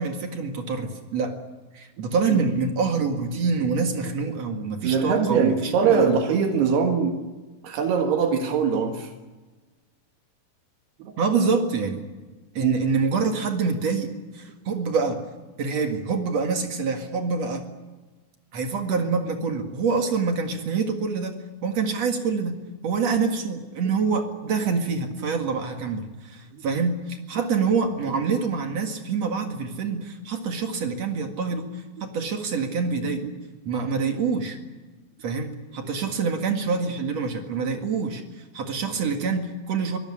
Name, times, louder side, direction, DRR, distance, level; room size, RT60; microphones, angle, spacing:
voice 1, 0.0-1.4 1.7-6.2 11.2-12.1 12.5-14.1 14.3-15.2 15.6-17.6 18.5-21.3 21.6-22.6 22.8-33.3 33.7-34.6 35.2-40.0, right 5 dB, 50° right, 5 dB, 2.5 m, -26 dB
voice 2, 4.8-7.2 7.6-9.1 11.0-11.1 12.6-12.7 26.5-26.6, right 6 dB, 75° right, 5 dB, 3.6 m, -22 dB
24.0 x 17.5 x 9.9 m, 1.3 s
omnidirectional pair, 4.8 m